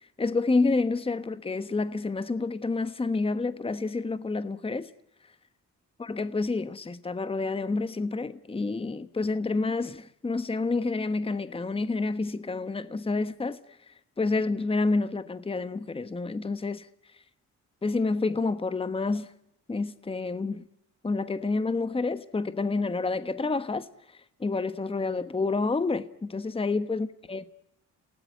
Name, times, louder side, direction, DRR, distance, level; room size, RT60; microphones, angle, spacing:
voice 1, 0.2-4.9 6.0-13.6 14.2-16.9 17.8-19.3 19.7-20.6 21.0-23.9 24.4-27.4, left 3 dB, 20° left, 1.2 m, -28 dB
29.0 x 18.5 x 9.3 m
cardioid pair, 90°, 30 cm